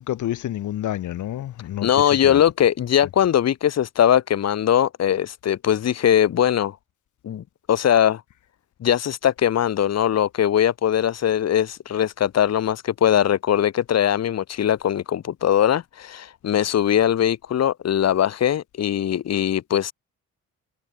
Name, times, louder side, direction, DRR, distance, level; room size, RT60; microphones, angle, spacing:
voice 1, 0.0-2.4, left 12 dB, 75° left, 4.0 m, -29 dB
voice 2, 1.8-6.8 7.2-8.2 8.8-19.9, left 10 dB, 60° left, 2.1 m, -21 dB
cardioid pair, 90°, 30 cm